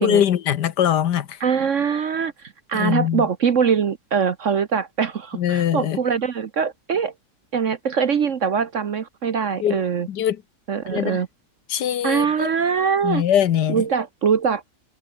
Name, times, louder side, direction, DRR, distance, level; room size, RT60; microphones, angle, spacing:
voice 1, 0.0-1.4 2.7-3.3 5.3-6.0 9.6-9.8 10.1-10.4 10.9-11.2 11.7-12.5 13.0-13.8, left 10 dB, 70° left, 1.5 m, -22 dB
voice 2, 1.4-7.1 7.5-10.1 10.7-11.3 12.0-13.2 13.7-14.7, right 6 dB, 50° right, 1.1 m, -22 dB
omnidirectional pair, 1.9 m